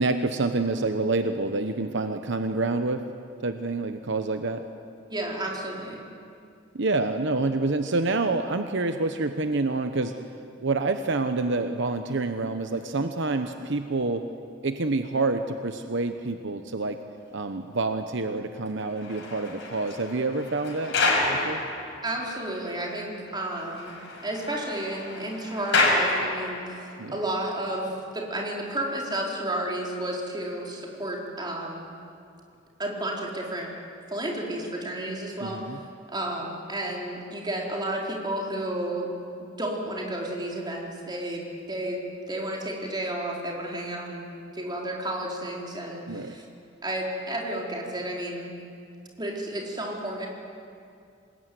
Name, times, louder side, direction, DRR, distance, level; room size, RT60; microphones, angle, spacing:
voice 1, 0.0-3.0 3.4-4.6 6.7-10.1 10.6-14.2 14.6-17.0 17.3-21.0 21.3-21.6 27.0-27.2 35.4-35.8 46.1-46.4, right 3 dB, 65° right, 7 dB, 1.0 m, -27 dB
voice 2, 5.1-6.0 22.0-23.9 24.2-31.9 32.8-33.7 34.1-35.7 36.1-39.1 39.4-42.0 42.3-46.4 46.8-48.6 49.2-50.3, right 1 dB, 25° right, -2 dB, 4.4 m, -32 dB
sound 1, 18.8-22.5 22.8-22.9 23.3-23.4 23.6-26.9 27.6-27.8, left 2 dB, 65° left, 5.3 m, -29 dB
26.5 x 21.0 x 9.4 m, 2.5 s
head